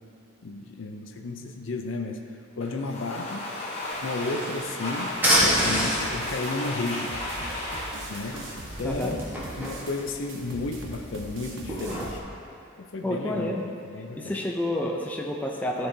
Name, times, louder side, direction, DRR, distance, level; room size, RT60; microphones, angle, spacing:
voice 1, 0.4-2.2 2.6-3.5 4.0-7.2 8.1-8.5 8.8-9.2 9.6-12.2 12.8-14.4, left 3 dB, 70° left, 3 dB, 0.5 m, -33 dB
Domestic sounds home sounds, 2.6-9.5, left 1 dB, 30° left, 1.2 m, -35 dB
sound 1, 3.8-12.1, equal, 10° right, 1.2 m, -30 dB
sound 2, 5.4-12.2, right 2 dB, 70° right, 0.9 m, -42 dB
voice 2, 8.8-9.2 13.0-13.6 14.1-15.9, left 1 dB, 10° left, -1 dB, 0.4 m, -29 dB
13.5 x 4.7 x 2.7 m, 2.6 s
head